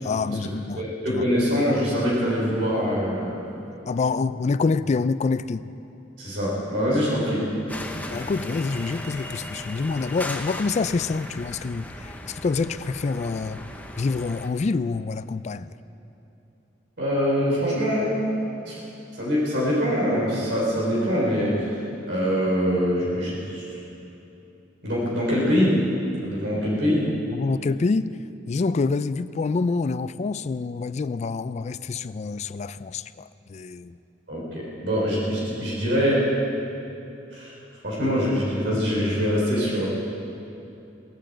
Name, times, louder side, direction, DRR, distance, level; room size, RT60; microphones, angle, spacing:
voice 1, 0.0-0.8 1.1-1.2 3.9-5.7 8.1-13.6 14.0-15.7 27.3-28.2 28.5-33.9, left 4 dB, 40° left, 0.3 m, -26 dB
voice 2, 0.7-3.5 6.2-7.5 17.0-18.2 18.7-18.8 19.1-23.6 24.8-25.8 26.2-27.1 34.3-36.3 37.3-37.6 37.8-39.9, equal, 70° right, 3.7 m, -24 dB
sound 1, 7.7-14.5, left 1 dB, 10° left, 0.9 m, -37 dB
17.5 x 8.9 x 7.8 m
head